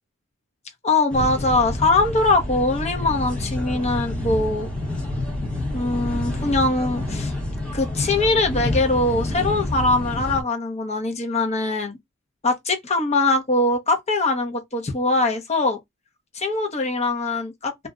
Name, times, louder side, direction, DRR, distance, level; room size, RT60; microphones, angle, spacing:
voice 1, 0.8-4.7 5.7-7.3 7.7-12.0 12.4-15.8 16.3-17.9, left 2 dB, 35° left, 0.7 m, -22 dB
sound 1, 1.1-10.4, left 1 dB, 5° left, 0.9 m, -28 dB
2.5 x 2.1 x 3.6 m
head